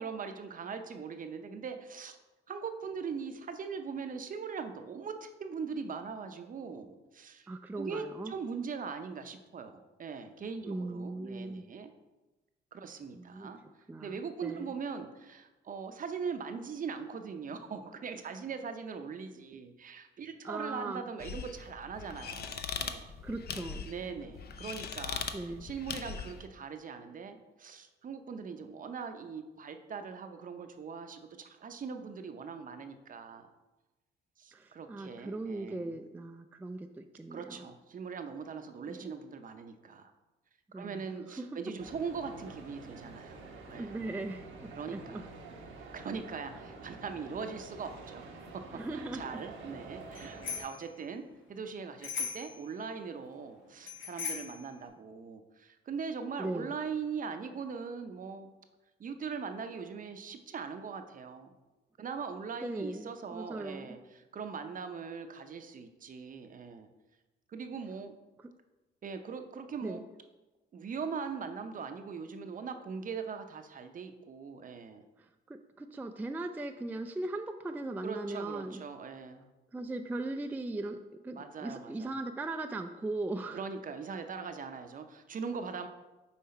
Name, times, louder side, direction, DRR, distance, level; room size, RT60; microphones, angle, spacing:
voice 1, 0.0-2.2 2.5-7.5 7.8-11.9 12.7-13.6 14.0-23.0 23.9-33.5 34.4-36.0 37.3-40.1 40.7-43.4 43.7-44.0 44.7-45.3 45.9-48.3 48.5-51.2 51.5-58.5 59.0-61.5 62.0-66.9 67.5-68.1 69.0-70.1 70.7-75.0 78.0-79.5 81.4-82.1 83.5-85.9, right 5 dB, 45° right, 7 dB, 0.6 m, -41 dB
voice 2, 7.5-8.4 10.7-11.6 13.1-13.5 13.9-14.7 20.4-21.1 23.2-23.9 25.3-25.7 34.5-37.7 38.9-39.1 40.7-41.5 43.7-45.3 48.7-49.3 56.4-56.7 62.6-64.0 69.8-70.0 75.2-78.8 79.7-81.0 81.2-83.6, right 2 dB, 10° right, 6 dB, 0.3 m, -39 dB
sound 1, 21.2-26.5, left 6 dB, 55° left, 0.6 m, -40 dB
Central station, 41.8-50.6, right 3 dB, 85° right, 1.0 m, -48 dB
Bicycle bell, 50.1-50.8 52.0-52.6 53.8-54.6, left 6 dB, 70° left, 1.6 m, -38 dB
5.7 x 4.6 x 4.3 m, 1.1 s
cardioid pair, 90°, 20 cm